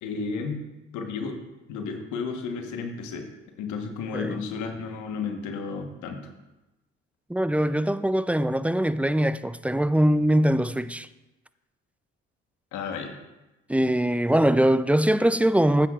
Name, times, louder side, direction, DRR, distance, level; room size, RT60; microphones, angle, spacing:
voice 1, 0.0-0.6 0.9-1.4 1.7-3.3 3.6-6.2 12.7-13.2, left 5 dB, 80° left, 1.2 m, -32 dB
voice 2, 7.3-11.1 13.7-15.9, right 1 dB, 5° right, 0.3 m, -22 dB
13.0 x 9.5 x 2.4 m
supercardioid pair, 60°, 29 cm